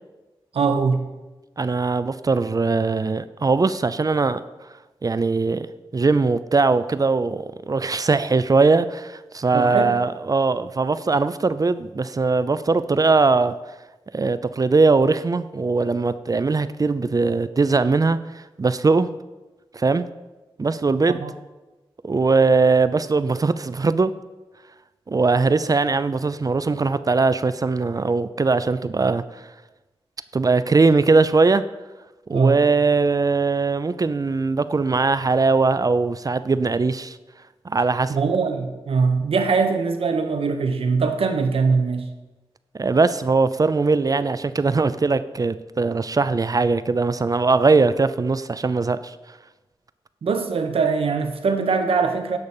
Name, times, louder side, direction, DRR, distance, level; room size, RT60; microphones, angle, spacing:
voice 1, 0.5-1.0 9.5-10.0 21.1-21.3 32.3-32.6 38.1-42.1 50.2-52.4, right 4 dB, 80° right, 7 dB, 1.0 m, -22 dB
voice 2, 1.6-4.4 5.0-5.7 5.9-13.5 14.1-19.1 19.7-20.1 20.6-21.2 22.0-24.1 25.1-29.5 30.3-31.6 32.3-37.2 37.6-38.2 42.7-49.1, right 3 dB, 40° right, 14 dB, 0.5 m, -20 dB
12.0 x 4.0 x 7.2 m, 1.1 s
cardioid pair, 55°, 9 cm